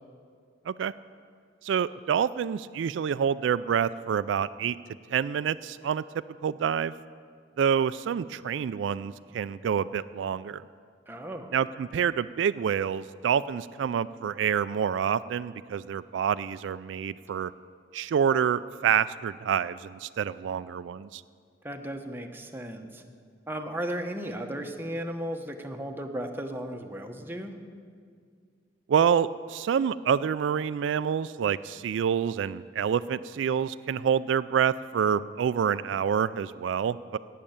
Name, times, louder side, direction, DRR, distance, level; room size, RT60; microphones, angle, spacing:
voice 1, 1.6-4.8 5.1-6.0 6.4-6.9 7.6-10.6 11.5-17.5 17.9-21.2 28.9-37.2, right 8 dB, 80° right, 15 dB, 0.3 m, -27 dB
voice 2, 11.1-11.5 21.6-23.0 23.5-27.5, right 1 dB, 10° right, 4 dB, 0.9 m, -35 dB
17.5 x 6.6 x 8.8 m, 2.1 s
head